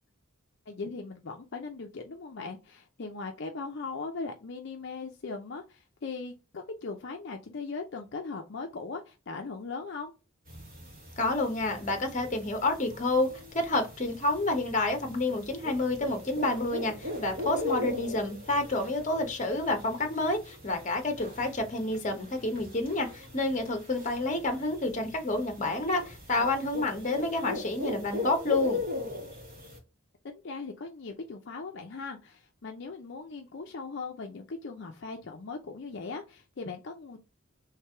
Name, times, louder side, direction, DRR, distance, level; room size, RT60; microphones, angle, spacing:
voice 1, 0.7-10.1 30.2-37.2, left 4 dB, 55° left, 0.5 m, -39 dB
sound 1, 10.5-29.8, left 2 dB, 40° right, 2.0 m, -40 dB
voice 2, 11.2-28.8, left 2 dB, 35° left, 0.9 m, -29 dB
3.3 x 3.2 x 4.4 m
head